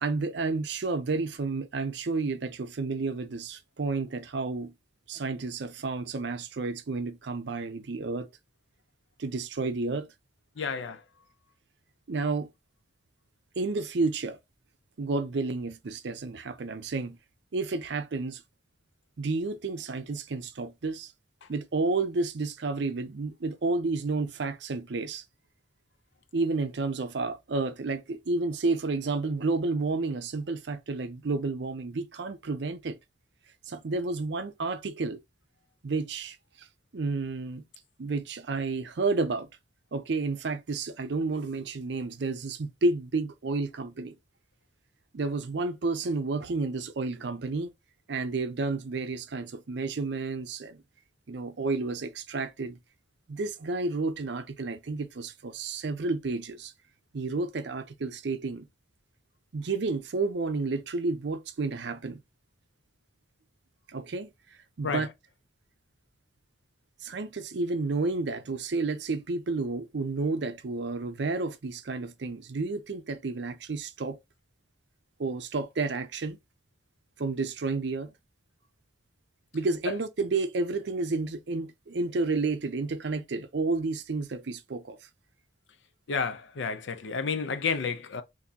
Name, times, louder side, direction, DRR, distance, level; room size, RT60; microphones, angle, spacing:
voice 1, 0.0-4.7 5.1-8.3 9.2-10.1 12.1-12.5 13.6-14.4 15.0-17.2 17.5-18.4 19.2-21.1 21.5-25.2 26.3-33.0 33.7-35.2 35.8-36.7 36.9-37.6 38.0-39.5 39.9-44.2 45.1-47.7 48.1-50.8 51.3-52.8 53.3-56.7 57.1-58.7 59.5-62.2 63.9-64.3 64.8-65.1 67.0-74.2 75.2-76.4 77.2-78.1 79.5-85.0, right 3 dB, 65° right, 0.5 m, -31 dB
voice 2, 10.6-11.0 21.4-21.5 64.8-65.1 79.9-80.0 86.1-88.2, left 5 dB, 75° left, 0.5 m, -31 dB
3.7 x 2.6 x 2.8 m
head